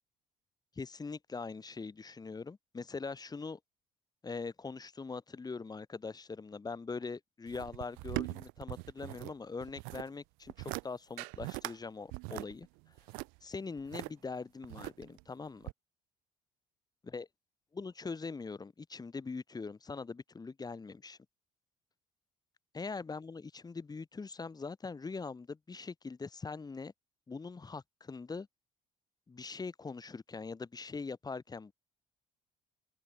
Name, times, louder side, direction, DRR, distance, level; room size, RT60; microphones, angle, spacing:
voice 1, 0.8-3.6 4.2-12.7 13.4-15.7 17.1-17.3 17.7-21.2 22.7-26.9 27.3-28.5 29.3-31.7, left 4 dB, 25° left, 4.0 m, -42 dB
sound 1, 7.5-9.3 9.6-10.1 10.5-10.8 11.2-11.8 12.1-14.1 14.6-15.2 15.7-15.8, right 30 dB, 80° right, 1.7 m, -41 dB
open air
supercardioid pair, 70°, 14 cm